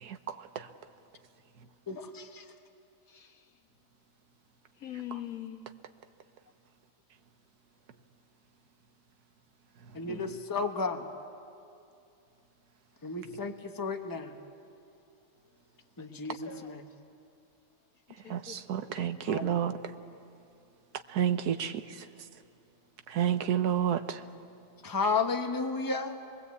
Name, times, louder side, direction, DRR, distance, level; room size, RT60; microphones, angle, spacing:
voice 1, 0.0-0.7 18.3-19.8 21.1-22.0 23.1-24.2, right 9 dB, 80° right, 1.4 m, -30 dB
voice 2, 1.9-2.4 9.9-11.0 13.0-14.3 16.0-16.8 19.2-19.5 24.8-26.2, left 4 dB, 15° left, 1.1 m, -33 dB
voice 3, 3.1-3.5 4.8-5.7 10.0-10.3 16.0-16.7 18.2-18.9, left 10 dB, 65° left, 1.8 m, -44 dB
27.0 x 21.5 x 8.3 m
omnidirectional pair, 1.6 m